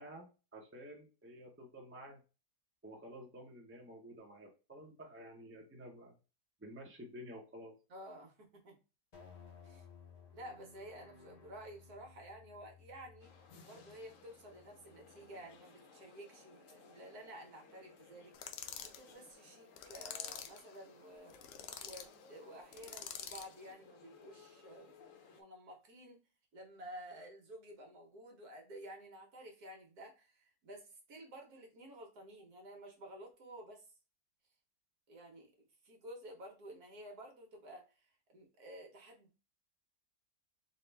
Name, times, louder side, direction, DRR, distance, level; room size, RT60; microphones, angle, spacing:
voice 1, 0.0-2.2 2.8-6.2 6.6-7.7, equal, 10° right, 0 dB, 0.6 m, -51 dB
voice 2, 7.9-8.8 9.6-9.8 10.3-13.3 13.7-21.3 21.8-25.0 25.3-26.2 26.5-33.9 35.1-39.4, right 1 dB, 65° right, 2 dB, 1.5 m, -52 dB
sound 1, 9.1-15.6, left 6 dB, 35° left, 0.6 m, -59 dB
sound 2, 13.2-25.4, left 4 dB, 60° left, 1.0 m, -61 dB
sound 3, 18.3-19.0 19.8-20.6 21.3-22.1 22.7-23.5, left 8 dB, 85° left, 1.2 m, -46 dB
4.1 x 2.6 x 3.3 m, 0.32 s
omnidirectional pair, 1.8 m